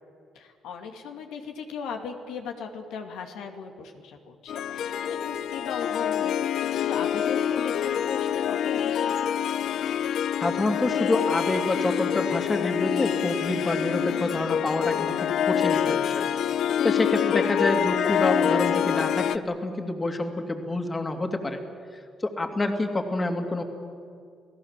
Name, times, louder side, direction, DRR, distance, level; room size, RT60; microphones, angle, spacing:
voice 1, 0.3-9.5 17.2-17.4, left 6 dB, 90° left, 4 dB, 2.5 m, -38 dB
Harp, 4.5-19.4, left 9 dB, 70° left, 0.7 m, -26 dB
voice 2, 10.4-16.2 16.8-21.6 22.2-23.6, left 2 dB, 25° left, 5 dB, 2.8 m, -27 dB
29.5 x 17.5 x 7.5 m, 2.4 s
cardioid pair, 90°, 0 cm